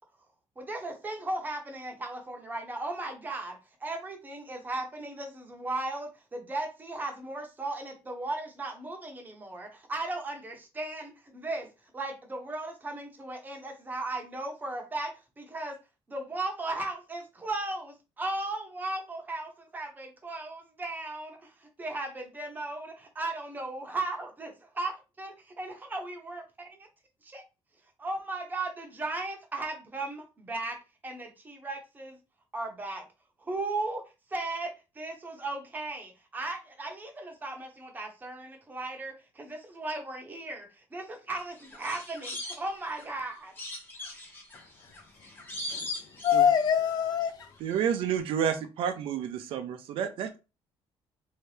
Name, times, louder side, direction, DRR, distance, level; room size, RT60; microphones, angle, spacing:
voice 1, 0.6-11.7 11.9-15.8 16.1-26.9 27.2-27.4 28.0-32.2 32.5-33.0 33.4-34.0 34.3-43.5, right 2 dB, 20° right, 0.8 m, -36 dB
sound 1, 41.4-43.1 43.6-46.9 47.2-47.8 48.1-48.2, left 2 dB, 20° left, 0.9 m, -40 dB
voice 2, 46.2-47.5, left 8 dB, 45° left, 0.6 m, -24 dB
voice 3, 47.6-50.4, right 8 dB, 65° right, 0.5 m, -30 dB
3.3 x 2.7 x 3.3 m
cardioid pair, 150°, 10 cm